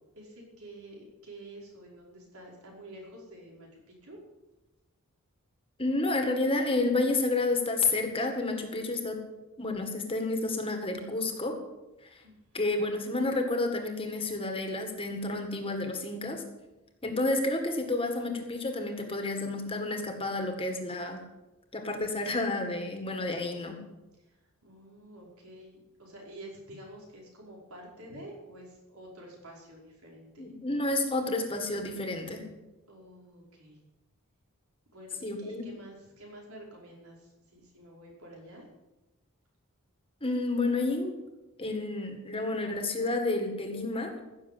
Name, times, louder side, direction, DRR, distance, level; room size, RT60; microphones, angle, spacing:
voice 1, 0.1-4.2 12.2-12.6 24.3-24.4 24.6-30.6 32.9-33.8 34.9-38.7, right 1 dB, 85° right, -2 dB, 5.1 m, -49 dB
voice 2, 5.8-9.2 9.6-11.6 12.5-16.4 17.0-21.2 21.7-23.8 30.4-32.5 35.2-35.6 40.2-41.1 41.6-44.1, left 2 dB, 25° left, 4 dB, 1.9 m, -30 dB
16.0 x 7.0 x 8.5 m, 1.0 s
head